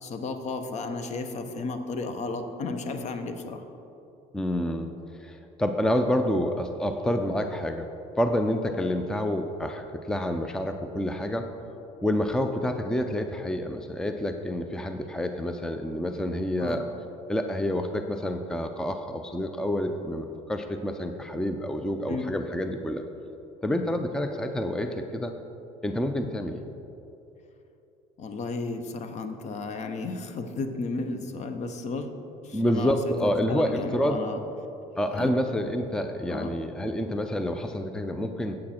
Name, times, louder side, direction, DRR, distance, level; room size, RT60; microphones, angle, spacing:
voice 1, 0.0-3.7 16.6-16.8 22.1-22.3 28.2-32.1 32.4-34.4 35.2-35.3 36.3-36.6, left 3 dB, 50° left, 8 dB, 0.9 m, -33 dB
voice 2, 4.3-4.9 5.2-7.9 8.2-11.5 12.0-16.8 17.3-23.0 23.6-25.3 25.8-26.6 32.5-34.2 35.0-38.6, left 1 dB, 5° left, 7 dB, 0.5 m, -28 dB
8.6 x 8.4 x 4.3 m, 3.0 s
supercardioid pair, 95°, 15 cm